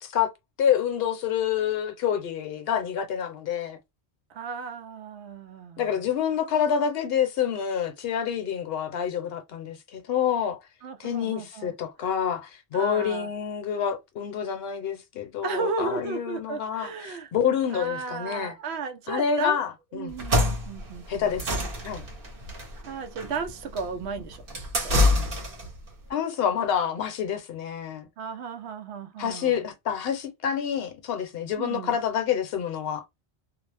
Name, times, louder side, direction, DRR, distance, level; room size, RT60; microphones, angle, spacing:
voice 1, 0.6-3.8 5.8-10.6 11.0-18.6 19.1-20.1 21.1-21.5 21.8-22.0 26.1-28.1 29.2-33.0, left 8 dB, 65° left, 0.9 m, -27 dB
voice 2, 4.3-6.1 10.8-11.7 12.7-13.3 15.4-17.3 17.7-19.6 19.9-21.6 22.8-25.0 25.6-25.7 28.2-29.7 31.6-32.0, right 5 dB, 80° right, 0.9 m, -35 dB
sound 1, 20.1-25.8, left 1 dB, 55° right, 1.1 m, -26 dB
2.5 x 2.0 x 3.3 m
omnidirectional pair, 1.1 m